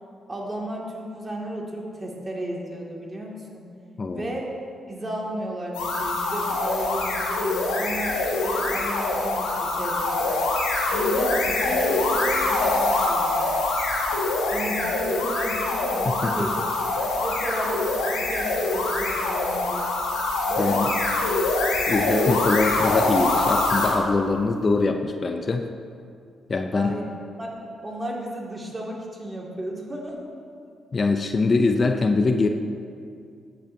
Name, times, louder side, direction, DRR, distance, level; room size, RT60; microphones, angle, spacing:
voice 1, 0.3-3.6 4.1-4.5 4.9-10.3 10.9-13.5 14.2-16.7 17.2-19.9 20.5-21.2 26.7-27.1 27.4-30.2, right 1 dB, 30° right, -2 dB, 2.3 m, -33 dB
voice 2, 4.0-4.4 16.1-16.3 20.6-20.9 21.9-25.7 26.5-27.0 30.9-32.5, left 3 dB, 45° left, 6 dB, 0.5 m, -23 dB
sound 1, 5.7-24.0, left 2 dB, 90° left, 1.3 m, -24 dB
13.5 x 7.7 x 2.8 m, 2.4 s
hypercardioid pair, 45°, 0 cm